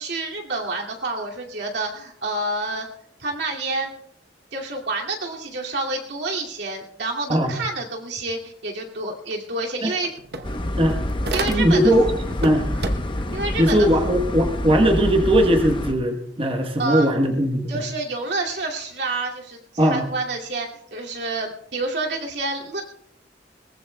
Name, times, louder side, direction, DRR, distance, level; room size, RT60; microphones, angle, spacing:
voice 1, 0.0-2.9 3.2-3.9 4.5-10.1 11.2-11.9 12.6-12.8 13.3-13.9 16.8-17.1 17.7-22.8, right 2 dB, 80° right, -1 dB, 2.4 m, -28 dB
sound 1, 9.3-9.4 9.7-11.9 12.3-13.3, right 3 dB, 65° right, 0.9 m, -31 dB
sound 2, 10.4-15.9, left 1 dB, 30° left, 0.8 m, -27 dB
voice 2, 11.5-12.1 12.4-12.7 13.6-17.8 19.8-20.0, equal, 30° right, 3 dB, 1.1 m, -19 dB
21.5 x 19.0 x 2.2 m, 0.73 s
head